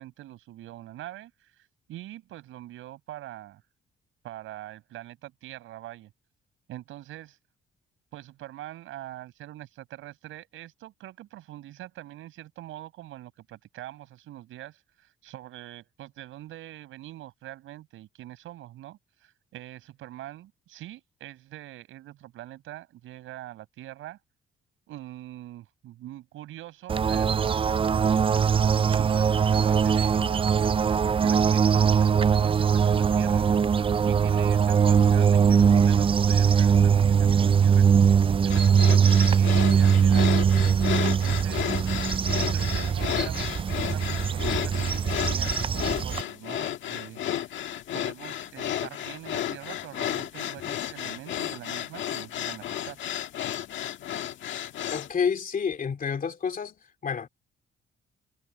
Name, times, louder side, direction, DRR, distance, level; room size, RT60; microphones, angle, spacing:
voice 1, 0.0-3.6 4.2-6.1 6.7-7.4 8.1-24.2 24.9-28.5 28.9-40.5 41.0-41.7 42.5-47.5 47.9-53.0, right 14 dB, 85° right, 6.7 m, -44 dB
sound 1, 26.9-46.2, right 7 dB, 25° right, 0.4 m, -21 dB
sound 2, 38.5-55.1, left 11 dB, 75° left, 1.6 m, -33 dB
voice 2, 54.9-56.8 57.0-57.3, left 6 dB, 45° left, 2.7 m, -29 dB
cardioid pair, 90°, 20 cm